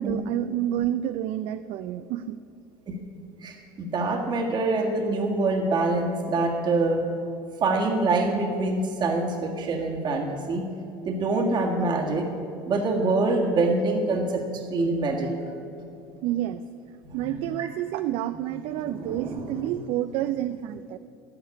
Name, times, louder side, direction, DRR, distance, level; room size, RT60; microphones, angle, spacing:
voice 1, 0.0-2.4 16.2-16.6 17.1-21.0, right 12 dB, 60° right, 12 dB, 0.4 m, -29 dB
voice 2, 3.4-7.0 7.6-10.6 11.1-12.3 12.7-15.3 17.0-17.7 18.8-19.7, right 3 dB, 40° right, 1 dB, 1.8 m, -25 dB
14.0 x 5.6 x 9.8 m, 2.6 s
hypercardioid pair, 90°, 11 cm